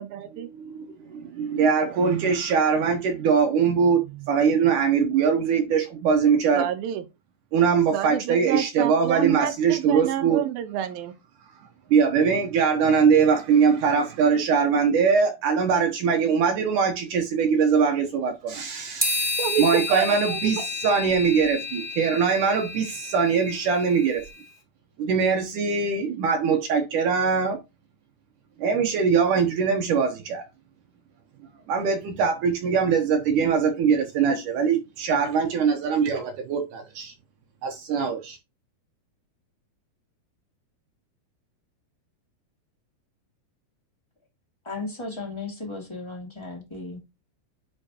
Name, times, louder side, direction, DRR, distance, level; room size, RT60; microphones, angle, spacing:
voice 1, 0.0-0.5 6.5-7.0 7.9-11.1 19.4-20.7, right 11 dB, 85° right, 2.0 m, -28 dB
voice 2, 1.4-6.7 7.5-10.4 11.9-24.2 25.0-27.6 28.6-30.4 31.7-37.1 37.6-38.4, right 6 dB, 70° right, 2.0 m, -22 dB
sound 1, 19.0-24.3, left 3 dB, ahead, 2.4 m, -31 dB
voice 3, 44.6-47.0, left 3 dB, 20° left, 0.8 m, -35 dB
10.0 x 4.5 x 2.9 m
omnidirectional pair, 4.9 m